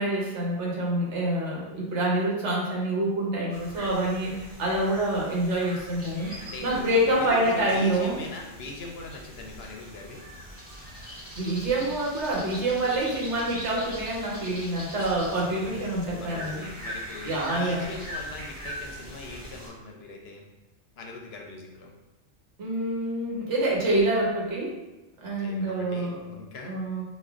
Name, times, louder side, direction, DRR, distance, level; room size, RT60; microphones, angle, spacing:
voice 1, 0.0-8.2 11.4-16.7 17.2-17.9 22.6-24.7 25.2-26.1 26.7-27.0, right 1 dB, 75° right, -4 dB, 1.2 m, -27 dB
sound 1, 3.5-19.7, equal, 10° right, 1.1 m, -41 dB
voice 2, 6.4-10.2 15.3-20.4 21.0-21.9 25.3-26.7, left 3 dB, 65° left, 1 dB, 0.7 m, -41 dB
5.1 x 2.2 x 2.3 m, 1.0 s
omnidirectional pair, 1.2 m